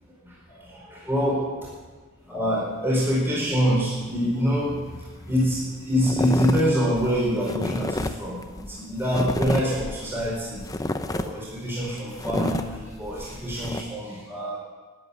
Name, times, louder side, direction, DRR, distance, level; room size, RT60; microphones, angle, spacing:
voice 1, 0.0-1.7 2.3-10.7 11.1-14.6, equal, 10° right, -6 dB, 4.7 m, -26 dB
sound 1, 5.0-5.1 5.3-5.6 6.0-13.8, left 1 dB, 15° left, 0.7 m, -30 dB
13.5 x 9.4 x 9.6 m, 1.3 s
head